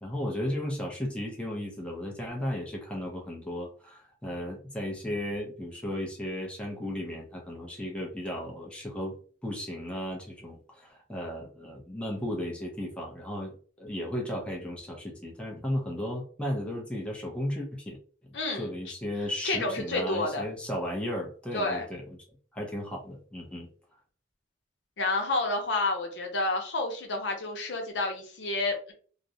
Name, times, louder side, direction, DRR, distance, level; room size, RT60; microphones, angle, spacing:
voice 1, 0.0-9.2 9.4-18.0 18.6-22.0 22.5-23.7, left 1 dB, 5° left, -1 dB, 0.5 m, -35 dB
voice 2, 18.3-18.7 19.4-20.5 21.5-21.9 25.0-28.9, left 2 dB, 80° left, 3 dB, 0.7 m, -29 dB
2.4 x 2.0 x 2.6 m, 0.43 s
head